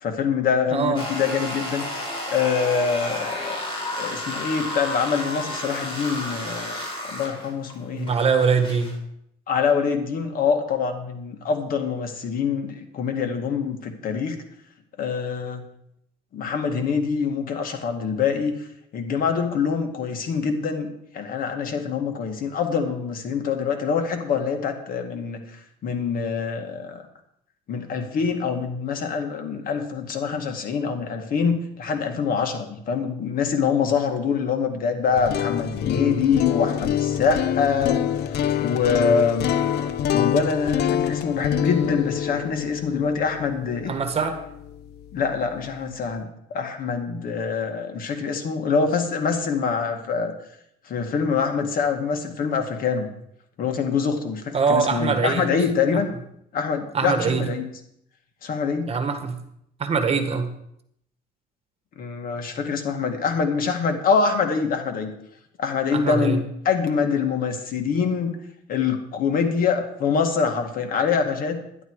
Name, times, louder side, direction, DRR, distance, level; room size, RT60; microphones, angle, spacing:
voice 1, 0.0-3.6 4.0-6.8 7.1-8.1 9.5-14.4 15.0-15.6 16.3-18.7 18.9-25.4 25.8-27.0 27.7-39.5 40.1-43.9 45.1-50.3 50.9-53.1 53.6-56.1 56.5-57.7 58.4-58.9 62.0-65.1 65.6-68.4 68.7-71.6, left 6 dB, 60° left, 5 dB, 2.0 m, -25 dB
sound 1, 0.9-8.9, left 1 dB, 30° left, 4.9 m, -32 dB
voice 2, 7.9-9.0 43.9-44.4 54.5-55.5 56.9-57.5 58.9-59.4 59.8-60.5 65.9-66.4, right 5 dB, 35° right, 7 dB, 1.7 m, -23 dB
sound 2, 35.1-45.1, left 9 dB, 75° left, 0.6 m, -26 dB
11.0 x 11.0 x 4.8 m, 0.74 s
cardioid pair, 110°, 17 cm